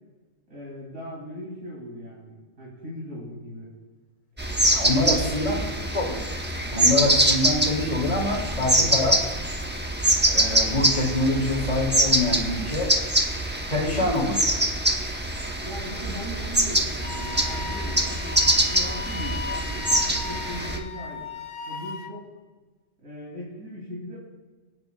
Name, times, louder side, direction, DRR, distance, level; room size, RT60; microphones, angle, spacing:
voice 1, 0.5-3.7 4.9-5.7 15.6-21.2 21.7-22.2 23.0-24.2, equal, 80° right, -6 dB, 3.2 m, -39 dB
sound 1, 4.4-20.8, right 1 dB, 10° right, 0.7 m, -24 dB
voice 2, 4.7-5.6 5.9-6.2 6.7-9.2 10.3-12.9 13.7-14.6, left 2 dB, 30° left, -3 dB, 2.6 m, -25 dB
Wind instrument woodwind instrument, 17.0-22.1, left 4 dB, 65° left, 1.1 m, -36 dB
26.0 x 8.7 x 2.3 m, 1.3 s
omnidirectional pair, 1.4 m